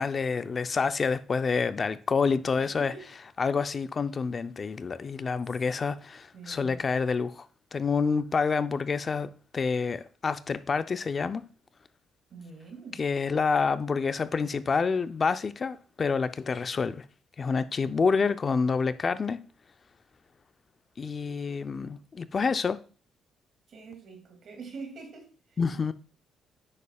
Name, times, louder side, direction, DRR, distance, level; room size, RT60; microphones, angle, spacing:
voice 1, 0.0-2.9 3.4-7.5 7.7-11.4 13.0-17.0 17.4-19.4 21.0-22.8 25.6-25.9, left 5 dB, 40° left, 0.5 m, -28 dB
voice 2, 2.6-3.1 6.3-6.8 12.3-13.0 23.7-25.6, right 4 dB, 60° right, 2.4 m, -44 dB
9.8 x 6.9 x 2.3 m
cardioid pair, 90°, 0 cm